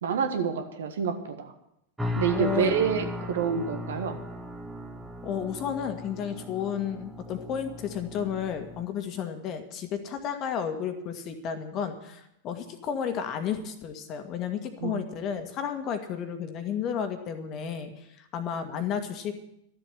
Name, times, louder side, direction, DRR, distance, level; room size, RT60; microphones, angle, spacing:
voice 1, 0.0-1.5 2.2-4.2 14.8-15.1, right 7 dB, 60° right, 7 dB, 1.5 m, -28 dB
sound 1, 2.0-8.8, left 1 dB, 5° right, 1.5 m, -37 dB
voice 2, 2.3-2.7 5.2-19.4, left 8 dB, 35° left, 7 dB, 1.8 m, -32 dB
13.0 x 7.7 x 10.0 m, 0.79 s
figure-of-eight pair, 90°, 0 cm